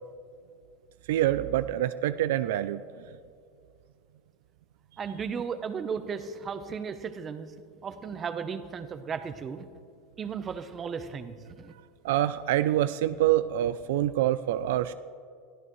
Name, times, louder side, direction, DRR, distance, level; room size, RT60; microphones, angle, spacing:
voice 1, 1.1-2.8 12.0-14.9, right 13 dB, 80° right, 13 dB, 0.4 m, -26 dB
voice 2, 5.0-7.5 7.8-9.7 10.2-11.7, right 6 dB, 25° right, 10 dB, 0.9 m, -35 dB
22.0 x 14.0 x 3.2 m, 2.4 s
supercardioid pair, 125°, 0 cm